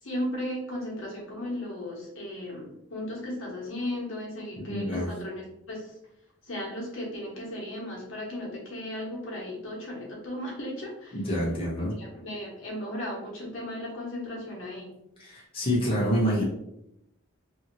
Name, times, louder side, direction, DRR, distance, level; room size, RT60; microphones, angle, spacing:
voice 1, 0.0-6.0 6.4-11.2 11.8-14.9, left 1 dB, 75° left, -3 dB, 1.0 m, -36 dB
voice 2, 4.6-5.1 11.1-11.9 15.2-16.4, equal, 25° left, -5 dB, 0.7 m, -27 dB
2.7 x 2.7 x 2.6 m, 0.80 s
head